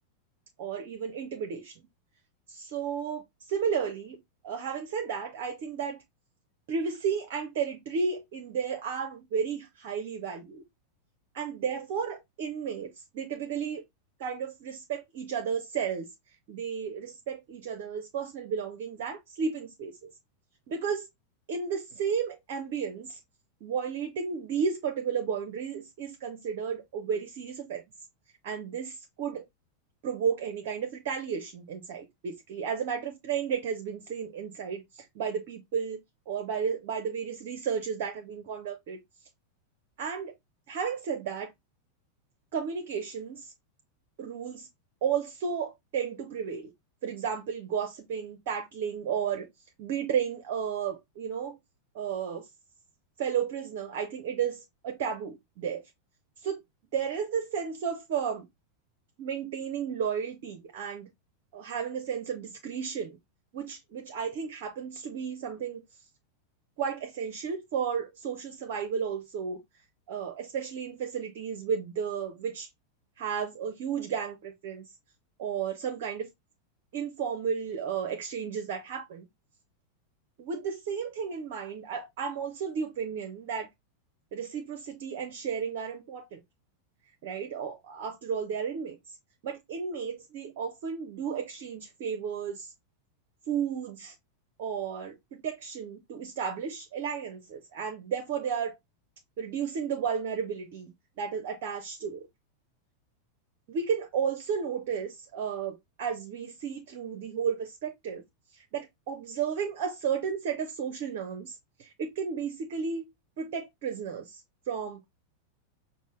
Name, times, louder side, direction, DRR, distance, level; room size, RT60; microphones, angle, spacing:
voice 1, 0.6-1.7 2.5-6.0 6.7-10.6 11.3-13.8 14.2-16.1 16.5-20.1 20.7-21.1 21.5-23.2 23.6-27.8 28.4-29.4 30.0-39.0 40.0-40.3 40.7-41.5 42.5-43.5 44.2-44.7 45.0-46.7 47.0-49.5 49.8-51.6 51.9-52.5 53.2-55.8 56.4-56.6 56.9-58.5 59.2-61.1 61.5-63.2 63.5-65.8 66.8-69.6 70.1-72.7 73.2-74.9 75.4-76.3 76.9-79.3 80.4-83.7 84.3-86.4 87.2-89.0 89.4-92.7 93.5-94.1 94.6-98.7 99.4-102.3 103.7-108.2 108.5-113.1 113.4-115.1, right 7 dB, 50° right, 0.6 m, -33 dB
5.2 x 2.1 x 3.1 m
figure-of-eight pair, 90°, 0 cm